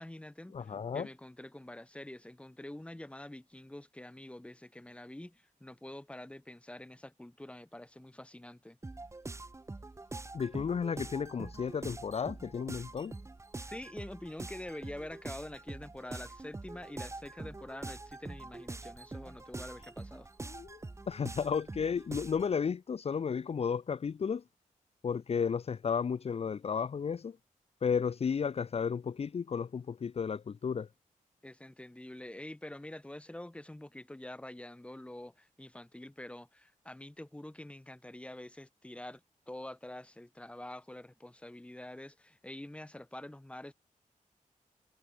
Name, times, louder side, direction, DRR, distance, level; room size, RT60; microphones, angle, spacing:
voice 1, 0.0-8.8 13.6-20.3 31.4-39.2 39.5-43.7, left 1 dB, 10° left, 3.8 m, -46 dB
voice 2, 0.5-1.1 10.3-13.1 20.4-20.8 21.1-24.4 25.0-27.4 27.8-30.9, left 6 dB, 45° left, 0.8 m, -33 dB
sound 1, 8.8-22.5, right 2 dB, 20° right, 3.0 m, -45 dB
wide cardioid pair, 175°, 14 cm